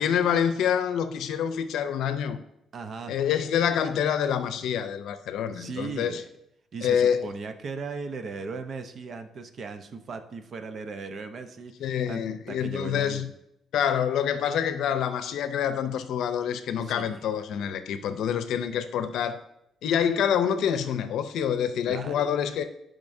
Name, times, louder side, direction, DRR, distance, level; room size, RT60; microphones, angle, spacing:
voice 1, 0.0-2.4 3.1-6.2 6.8-7.3 11.8-13.3 13.7-19.4 19.8-22.6, left 8 dB, 80° left, 0.6 m, -26 dB
voice 2, 2.7-3.1 5.5-6.3 6.7-12.2 12.5-13.2 16.8-17.2 21.9-22.3, right 4 dB, 55° right, 0.8 m, -37 dB
10.5 x 5.2 x 2.7 m
cardioid pair, 90°, 0 cm